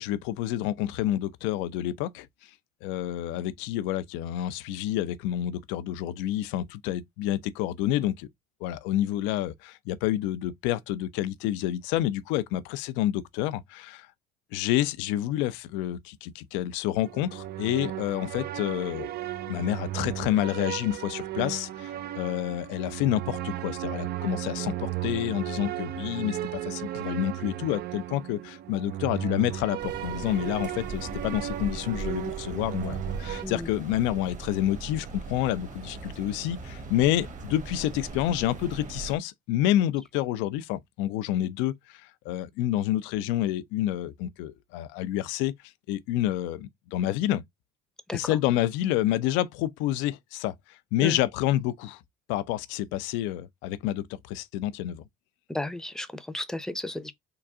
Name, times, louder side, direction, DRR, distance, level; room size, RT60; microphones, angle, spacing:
voice 1, 0.0-2.3 2.8-8.3 8.6-14.1 14.5-19.1 19.5-45.5 45.9-47.4 48.1-52.0 52.3-55.0, left 13 dB, 80° left, 0.5 m, -28 dB
sound 1, 17.0-33.4, right 13 dB, 55° right, 0.5 m, -35 dB
sound 2, 29.8-39.2, right 4 dB, 40° right, 1.3 m, -39 dB
voice 2, 55.5-57.1, left 1 dB, 5° left, 0.7 m, -34 dB
3.8 x 2.3 x 3.5 m
supercardioid pair, 70°, 19 cm